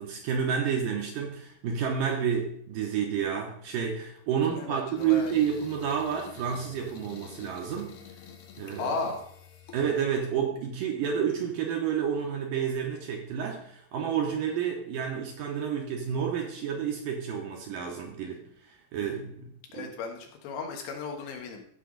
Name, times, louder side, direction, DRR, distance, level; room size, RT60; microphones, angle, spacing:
voice 1, 0.0-8.0 8.6-8.9 9.7-18.4 18.7-19.9, right 7 dB, 75° right, 1 dB, 2.2 m, -30 dB
voice 2, 4.4-5.4 8.8-9.2 19.7-21.7, left 4 dB, 85° left, 2 dB, 3.6 m, -35 dB
sound 1, 5.0-9.9, left 7 dB, 65° left, 2.3 m, -49 dB
15.5 x 5.5 x 3.9 m, 0.67 s
omnidirectional pair, 4.8 m